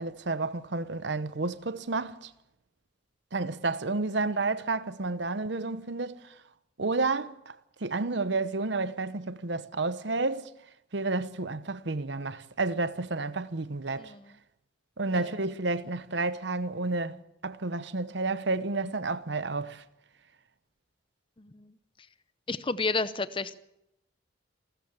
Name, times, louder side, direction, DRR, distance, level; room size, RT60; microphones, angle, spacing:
voice 1, 0.0-2.3 3.3-6.4 6.8-10.5 10.9-14.1 15.0-19.8, right 3 dB, 65° right, 0.9 m, -31 dB
voice 2, 21.4-21.7 22.5-23.6, left 3 dB, 25° left, 0.7 m, -31 dB
28.5 x 14.0 x 7.1 m
head